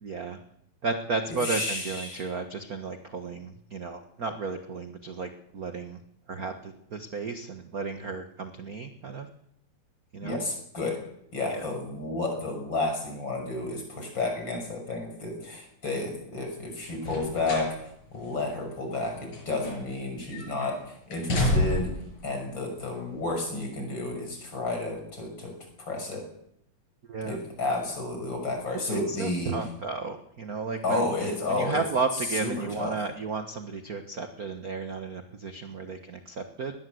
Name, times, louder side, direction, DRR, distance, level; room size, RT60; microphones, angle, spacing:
voice 1, 0.0-0.4 0.8-6.0 6.3-9.3 10.1-10.4 11.5-11.6 27.1-27.4 28.9-31.0 31.5-36.7, right 4 dB, 45° right, 7 dB, 1.2 m, -33 dB
voice 2, 1.3-2.3 10.2-11.0 11.3-17.7 18.1-21.9 22.2-26.2 27.2-29.6 30.8-31.8 32.4-33.0, left 2 dB, 35° left, 4 dB, 6.7 m, -31 dB
sound 1, 17.0-17.8 18.1-18.3 19.0-20.1 20.3-20.7 21.1-22.0 22.9-23.0, left 1 dB, 75° left, 7.9 m, -29 dB
20.0 x 20.0 x 7.9 m, 0.77 s
omnidirectional pair, 3.5 m